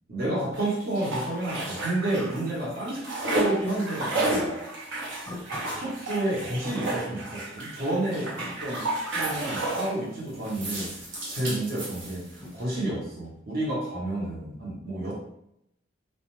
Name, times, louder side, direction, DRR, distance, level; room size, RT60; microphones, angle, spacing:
voice 1, 0.1-4.7 5.8-8.8 9.1-10.9 11.3-12.3 12.5-15.1, right 1 dB, 50° right, -6 dB, 0.9 m, -30 dB
sound 1, 0.5-2.5 2.8-10.0 10.4-12.5, right 2 dB, 80° right, 0.8 m, -32 dB
Thump thud, 3.7-3.8 5.3-6.3 6.7-7.7 8.1-9.5 10.1-10.3 10.6-11.0 12.4-13.5, left 1 dB, 15° left, 0.6 m, -45 dB
2.3 x 2.1 x 3.0 m, 0.78 s
head